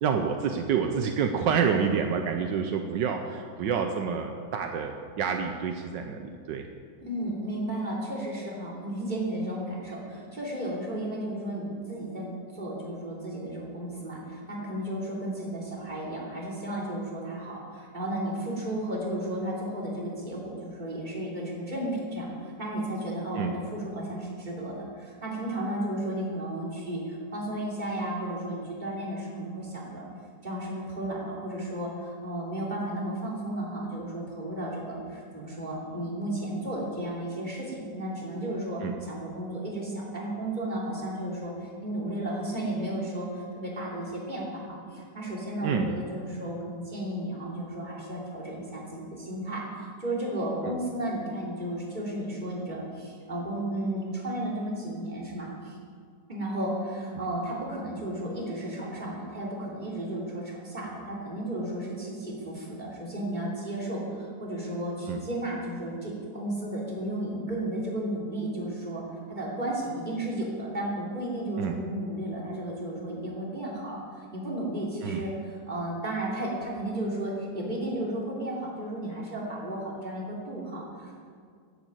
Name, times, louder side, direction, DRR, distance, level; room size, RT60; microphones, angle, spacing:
voice 1, 0.0-6.6 23.4-23.5 38.8-38.9 45.6-45.9 65.1-65.2 71.6-71.8 75.0-75.2, right 6 dB, 80° right, 4 dB, 1.5 m, -28 dB
voice 2, 7.0-30.0 30.4-38.8 39.1-55.8 56.3-69.0 69.3-75.3 75.7-81.1, right 1 dB, 25° right, -4 dB, 3.4 m, -33 dB
10.5 x 10.5 x 8.2 m, 2.1 s
omnidirectional pair, 1.9 m